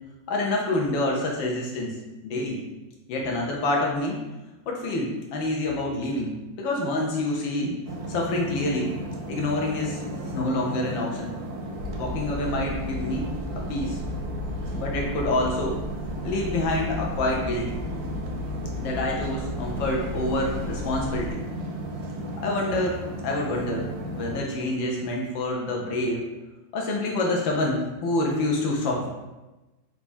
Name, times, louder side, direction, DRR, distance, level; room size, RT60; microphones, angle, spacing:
voice 1, 0.3-1.9 2.2-2.6 3.1-4.2 4.7-7.7 8.1-8.9 9.3-10.0 10.3-11.3 12.0-14.0 14.7-15.8 16.2-17.7 18.8-21.4 22.4-23.0 23.2-26.2 26.7-29.1, left 2 dB, 75° left, -1 dB, 1.4 m, -27 dB
sound 1, 7.9-24.4, right 1 dB, 70° right, 0.9 m, -35 dB
sound 2, 11.8-21.3, left 2 dB, 90° right, 1.7 m, -35 dB
4.5 x 2.3 x 4.2 m, 1.1 s
omnidirectional pair, 2.2 m